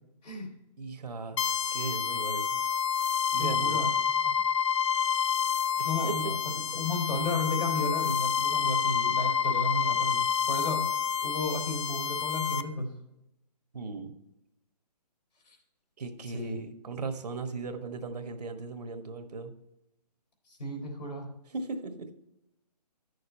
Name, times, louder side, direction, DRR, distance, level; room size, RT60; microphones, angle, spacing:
voice 1, 0.8-1.4 1.7-2.5 3.3-3.8 5.8-6.1 13.7-14.1 16.0-19.5 21.5-22.2, right 4 dB, 70° right, 7 dB, 1.3 m, -37 dB
sound 1, 1.4-12.6, left 7 dB, 45° left, 0.4 m, -28 dB
voice 2, 3.4-3.9 4.2-4.3 5.8-12.9 15.5-15.6 16.3-16.6 20.6-21.3, left 2 dB, 80° left, 2 dB, 3.3 m, -33 dB
9.7 x 6.6 x 4.2 m, 0.88 s
hypercardioid pair, 165°, 21 cm